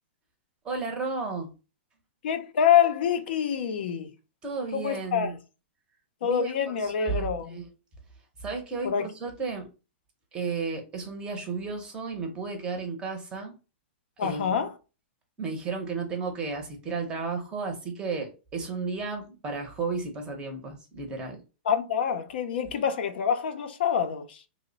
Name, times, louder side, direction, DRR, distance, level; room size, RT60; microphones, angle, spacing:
voice 1, 0.6-1.5 4.4-5.3 6.2-6.5 7.0-7.7 8.4-9.7 10.3-13.5 14.2-14.5 15.4-21.4, right 4 dB, 15° right, 0.6 m, -33 dB
voice 2, 2.2-4.1 4.7-5.4 6.2-7.6 8.8-9.1 14.2-14.7 21.7-24.4, left 8 dB, 60° left, 0.5 m, -26 dB
2.9 x 2.0 x 3.8 m
hypercardioid pair, 165°, 6 cm